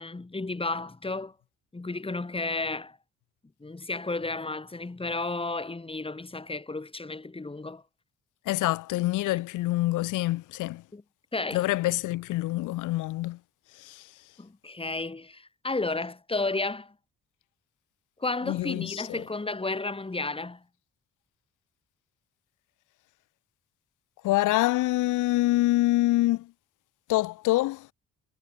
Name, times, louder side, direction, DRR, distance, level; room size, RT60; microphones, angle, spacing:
voice 1, 0.0-1.3 1.7-3.0 3.6-7.8 10.9-11.0 11.3-11.6 14.4-16.9 18.2-20.6, left 3 dB, 20° left, 4.2 m, -32 dB
voice 2, 8.5-10.8 11.5-13.4 13.8-14.0 18.5-19.2 24.2-26.5 27.1-27.9, left 18 dB, 85° left, 0.7 m, -26 dB
cardioid pair, 90°, 30 cm